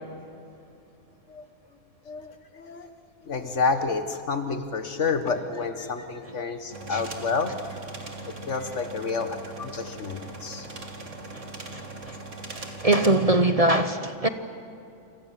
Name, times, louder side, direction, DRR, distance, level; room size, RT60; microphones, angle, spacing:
voice 1, 2.1-2.9 3.2-7.6 8.3-10.7, left 4 dB, 65° left, 1.8 m, -29 dB
sound 1, 6.7-13.1, right 2 dB, 65° right, 2.8 m, -40 dB
voice 2, 11.7-12.2 12.5-14.3, right 2 dB, 30° right, 1.0 m, -23 dB
28.5 x 26.0 x 7.7 m
omnidirectional pair, 1.3 m